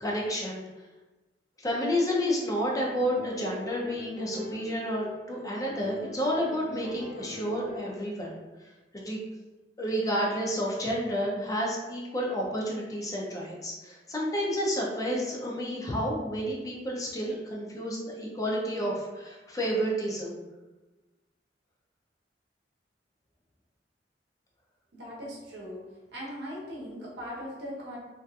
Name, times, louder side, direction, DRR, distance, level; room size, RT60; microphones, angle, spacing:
voice 1, 0.0-0.6 1.6-9.2 9.8-20.4, equal, 20° left, -3 dB, 0.4 m, -30 dB
sound 1, 3.0-5.3 5.7-8.1, left 2 dB, 20° right, 0.8 m, -42 dB
voice 2, 24.9-25.8 26.1-28.0, equal, 65° right, -5 dB, 0.8 m, -39 dB
2.6 x 2.4 x 2.2 m, 1.1 s
head